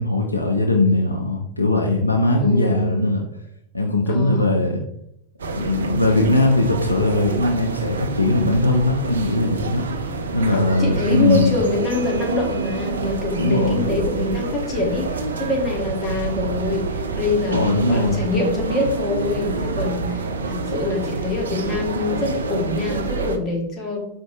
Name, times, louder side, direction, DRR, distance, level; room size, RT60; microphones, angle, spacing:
voice 1, 0.0-3.2 3.7-4.8 5.4-9.8 10.3-11.6 13.4-14.0 17.5-18.2, left 2 dB, 85° left, 1 dB, 0.5 m, -20 dB
voice 2, 2.4-3.1 4.1-4.6 10.1-10.2 10.5-24.0, left 2 dB, 30° left, -1 dB, 1.3 m, -25 dB
sound 1, 5.4-23.4, right 3 dB, 70° right, 0.4 m, -27 dB
4.7 x 2.6 x 3.7 m, 0.77 s
figure-of-eight pair, 90°, 0 cm